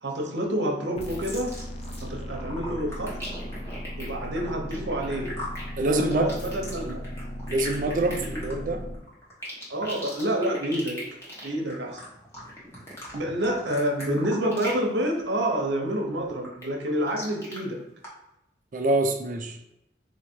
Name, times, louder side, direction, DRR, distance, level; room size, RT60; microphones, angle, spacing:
voice 1, 0.0-1.5 2.0-3.2 4.0-5.3 5.7-7.0 8.1-8.7 9.7-11.0 11.4-12.0 13.1-17.8, right 1 dB, 80° right, 1 dB, 0.9 m, -28 dB
sound 1, 1.0-9.0, equal, 35° left, 0.5 m, -37 dB
sound 2, 1.0-2.1 2.3-14.9 15.2-15.5 15.9-17.6 18.0-18.1, equal, 15° left, 1.2 m, -39 dB
voice 2, 5.8-6.4 6.9-7.0 7.5-8.8 18.7-19.6, right 2 dB, 45° right, 5 dB, 0.5 m, -25 dB
3.9 x 2.8 x 4.5 m, 0.85 s
head